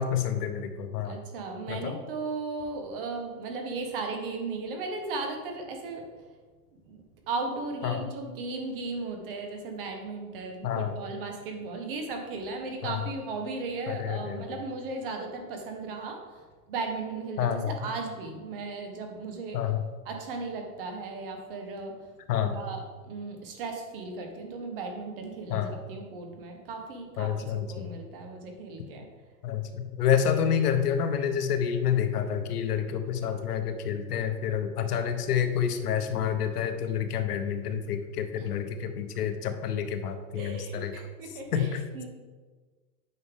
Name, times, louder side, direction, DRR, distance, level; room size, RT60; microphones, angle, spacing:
voice 1, 0.0-1.2 1.7-2.0 7.8-8.1 10.6-10.9 12.8-13.0 13.9-14.6 17.4-17.8 19.5-19.9 22.3-22.6 25.5-25.7 27.2-28.0 29.4-40.9 41.2-41.8, left 8 dB, 75° left, 8 dB, 1.0 m, -28 dB
voice 2, 1.0-6.1 6.8-19.6 20.0-22.1 22.4-29.0 38.4-38.5 40.3-42.1, right 3 dB, 35° right, 4 dB, 1.1 m, -36 dB
9.4 x 5.5 x 3.6 m, 1.4 s
supercardioid pair, 170°, 47 cm